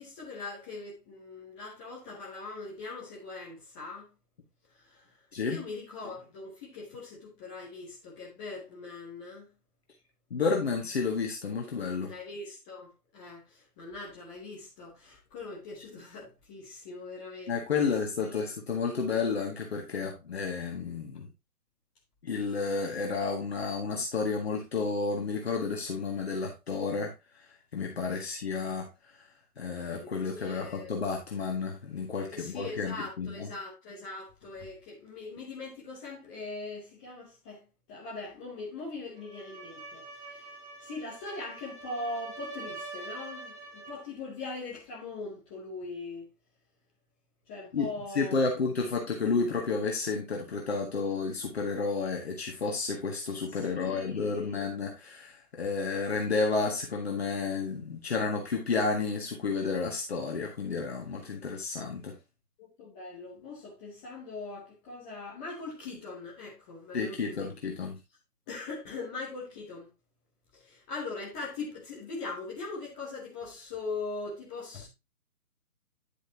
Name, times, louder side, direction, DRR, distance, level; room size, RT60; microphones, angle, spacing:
voice 1, 0.0-4.1 4.7-9.5 12.1-17.9 18.2-18.5 29.9-30.9 32.3-40.5 40.8-46.3 47.5-48.4 53.7-54.6 62.6-67.5 68.5-69.9 70.5-74.9, left 3 dB, 5° left, 1.0 m, -41 dB
voice 2, 5.3-5.7 10.3-12.2 17.5-21.3 22.2-33.5 47.7-62.2 66.9-68.0, left 4 dB, 40° left, 1.8 m, -31 dB
sound 1, 39.2-44.1, right 3 dB, 50° right, 2.6 m, -44 dB
10.0 x 6.5 x 2.8 m
figure-of-eight pair, 150°, 46 cm